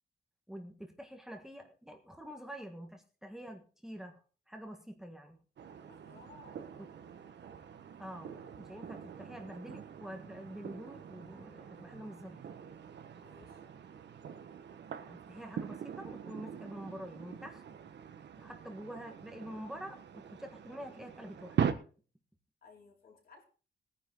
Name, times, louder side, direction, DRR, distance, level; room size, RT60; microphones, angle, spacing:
voice 1, 0.5-4.2 4.5-5.4 6.8-6.9 8.0-12.4 15.1-17.6 18.4-21.8, equal, ahead, 3 dB, 1.5 m, -47 dB
sound 1, 5.6-21.7, right 8 dB, 75° right, 1.5 m, -42 dB
voice 2, 5.9-6.6 13.2-13.6 22.6-23.4, left 4 dB, 55° left, 0 dB, 4.3 m, -58 dB
20.0 x 10.5 x 3.9 m, 0.39 s
wide cardioid pair, 175°, 18 cm